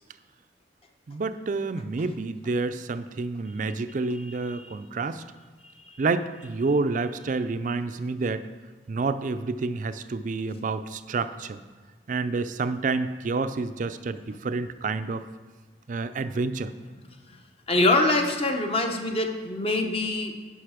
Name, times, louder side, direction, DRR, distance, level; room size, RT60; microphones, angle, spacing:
voice 1, 1.1-5.2 6.0-8.4 8.9-11.6 12.1-15.2 15.9-16.7, right 3 dB, 40° right, 12 dB, 0.4 m, -29 dB
voice 2, 17.7-20.3, left 2 dB, 30° left, 3 dB, 0.7 m, -25 dB
10.5 x 5.5 x 4.9 m, 1.5 s
head